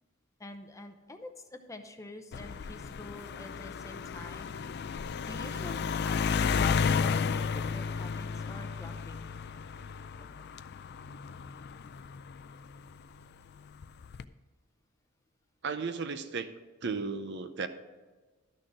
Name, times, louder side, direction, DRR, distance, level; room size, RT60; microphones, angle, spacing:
voice 1, 0.4-4.5 5.3-9.3 10.2-10.3, left 1 dB, 15° left, 6 dB, 0.7 m, -47 dB
sound 1, 2.3-13.0 13.8-14.2, left 6 dB, 50° left, 0.4 m, -33 dB
Wind instrument woodwind instrument, 5.8-10.5, right 4 dB, 80° right, 2.3 m, -54 dB
voice 2, 15.6-16.5 16.8-17.7, right 4 dB, 55° right, 10 dB, 0.7 m, -35 dB
12.5 x 6.4 x 4.9 m, 1.3 s
head